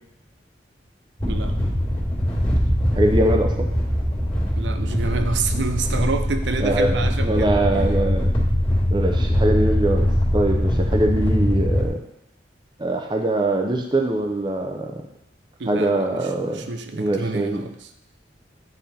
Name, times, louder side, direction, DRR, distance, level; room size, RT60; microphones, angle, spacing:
sound 1, 1.2-11.9, equal, 25° left, 2.2 m, -22 dB
voice 1, 2.9-3.7 6.6-8.3 8.9-10.1 10.3-12.0 12.8-15.0 15.7-16.7 16.9-17.6, right 1 dB, 25° right, 3 dB, 0.7 m, -23 dB
voice 2, 4.6-7.5 15.6-17.7, right 3 dB, 75° right, 8 dB, 0.6 m, -28 dB
9.2 x 3.5 x 4.3 m, 0.82 s
head